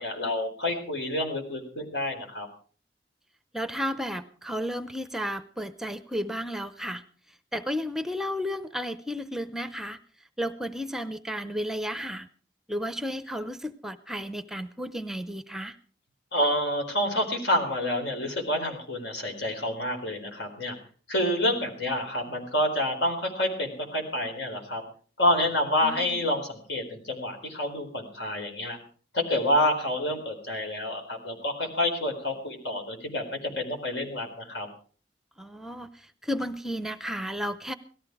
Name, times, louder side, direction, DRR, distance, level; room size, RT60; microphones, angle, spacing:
voice 1, 0.0-2.5 16.3-20.7 21.1-24.8 25.2-28.8 29.1-34.7, left 1 dB, 75° left, 3 dB, 4.3 m, -28 dB
voice 2, 3.5-7.0 7.5-10.0 10.4-12.3 12.7-15.8 25.8-26.2 35.4-37.7, equal, 5° right, 11 dB, 0.6 m, -33 dB
17.5 x 14.0 x 4.8 m, 0.42 s
head